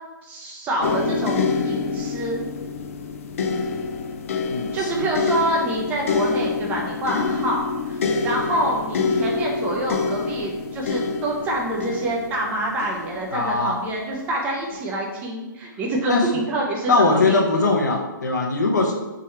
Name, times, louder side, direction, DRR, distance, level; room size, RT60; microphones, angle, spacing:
voice 1, 0.2-2.4 4.7-17.4, right 1 dB, 15° right, -1 dB, 0.5 m, -26 dB
sound 1, 0.8-13.9 14.7-14.9, left 4 dB, 40° left, 0.4 m, -26 dB
voice 2, 4.5-5.1 13.3-13.8 16.1-16.3 16.9-18.9, left 3 dB, 55° left, 1 dB, 0.8 m, -21 dB
3.8 x 3.0 x 4.3 m, 1.1 s
figure-of-eight pair, 130°, 11 cm